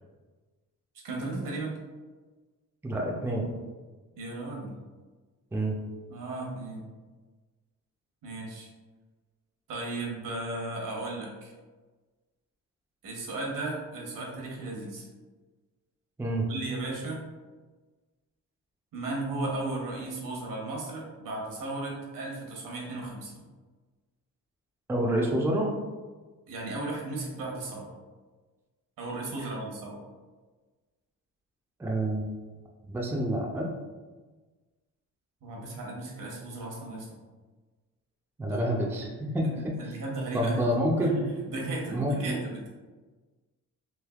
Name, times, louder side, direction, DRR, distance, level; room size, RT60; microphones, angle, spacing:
voice 1, 1.0-1.8 4.2-4.7 6.1-6.8 8.2-8.7 9.7-11.5 13.0-15.1 16.5-17.2 18.9-23.4 26.5-27.9 29.0-30.0 35.4-37.1 38.4-38.7 39.4-40.6 41.1-42.7, right 2 dB, 75° right, -2 dB, 1.0 m, -35 dB
voice 2, 2.8-3.5 5.5-5.8 16.2-16.5 24.9-25.7 31.8-32.3 32.9-33.7 38.4-39.1 39.3-40.0 40.3-41.2 41.9-42.4, right 1 dB, 5° right, -1 dB, 0.4 m, -28 dB
3.3 x 2.6 x 2.3 m, 1.3 s
cardioid pair, 110°, 33 cm